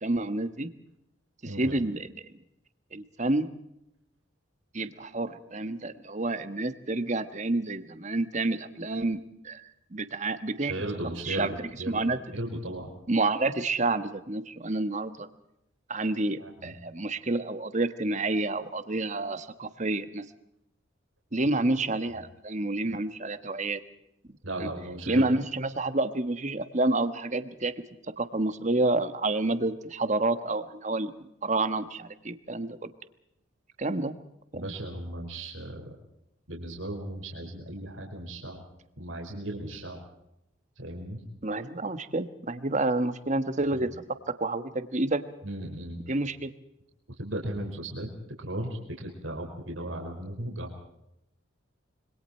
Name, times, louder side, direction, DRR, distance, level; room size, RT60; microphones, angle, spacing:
voice 1, 0.0-0.7 1.4-2.1 2.9-3.5 4.7-9.6 9.9-10.7 11.2-11.5 11.9-12.2 13.1-15.3 15.9-20.2 21.3-23.8 24.6-24.7 25.1-27.7 28.2-31.1 31.4-32.9 33.8-34.1 34.5-34.6 41.4-43.9 44.4-45.2 46.1-46.5, right 2 dB, 35° right, 11 dB, 1.4 m, -29 dB
voice 2, 10.6-12.1 12.3-12.9 16.4-16.7 24.4-25.3 34.5-35.9 36.5-38.6 39.0-40.0 40.8-41.2 43.7-43.9 45.4-46.0 47.2-48.1 48.4-50.8, right 1 dB, 80° right, 1 dB, 5.0 m, -36 dB
26.5 x 24.0 x 4.5 m, 0.80 s
head